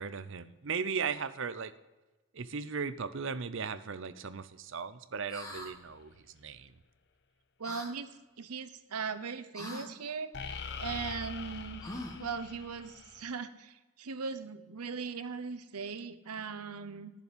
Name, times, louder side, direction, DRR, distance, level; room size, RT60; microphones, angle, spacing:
voice 1, 0.0-1.7 2.3-6.7, right 5 dB, 55° right, 13 dB, 0.6 m, -37 dB
sound 1, 5.3-5.7 7.6-7.9 9.5-9.9 11.8-12.3, left 1 dB, 15° left, 1.2 m, -42 dB
sound 2, 5.5-5.7 10.3-13.3, left 5 dB, 50° left, 0.6 m, -43 dB
voice 2, 7.6-8.1 8.4-11.8 12.2-17.1, right 5 dB, 90° right, 11 dB, 0.8 m, -39 dB
10.5 x 7.1 x 5.1 m, 1.1 s
head